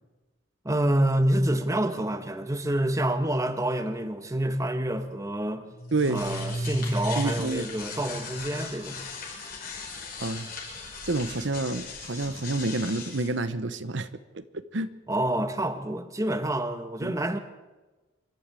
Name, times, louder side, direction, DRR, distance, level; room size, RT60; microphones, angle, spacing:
voice 1, 0.6-5.7 6.1-9.1 15.1-17.4, right 1 dB, 15° right, 1.1 m, -27 dB
sound 1, 5.7-13.3, left 2 dB, 45° left, 5.6 m, -35 dB
voice 2, 5.9-6.2 7.2-7.7 10.2-10.5 11.0-14.1 14.3-14.4 14.7-14.9 17.0-17.2, right 2 dB, 60° right, 1.0 m, -28 dB
26.0 x 12.5 x 8.3 m
head